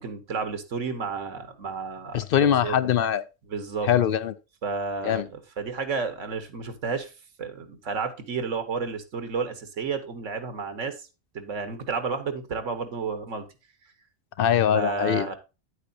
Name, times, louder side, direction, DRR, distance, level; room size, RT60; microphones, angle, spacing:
voice 1, 0.0-2.2 2.6-2.9 3.5-3.9 4.6-7.1 7.4-11.1 11.3-13.5 14.7-15.4, right 5 dB, 90° right, 1.6 m, -31 dB
voice 2, 2.1-3.2 3.9-4.3 5.0-5.3 14.4-15.3, left 9 dB, 60° left, 0.7 m, -22 dB
9.3 x 8.2 x 2.6 m
omnidirectional pair, 1.3 m